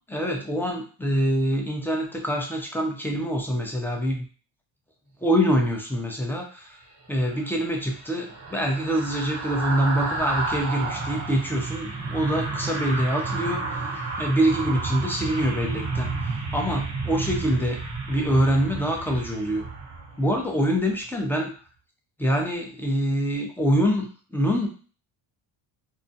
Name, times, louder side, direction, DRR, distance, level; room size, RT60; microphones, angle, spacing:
voice 1, 0.1-4.3 5.2-6.8 7.1-13.9 14.2-17.8 18.1-19.6 20.2-21.5 22.2-24.7, equal, 5° left, 1 dB, 0.6 m, -25 dB
sound 1, 7.2-20.5 20.9-21.1, right 3 dB, 30° right, 0.7 m, -31 dB
2.4 x 2.1 x 2.7 m, 0.38 s
supercardioid pair, 75°, 50 cm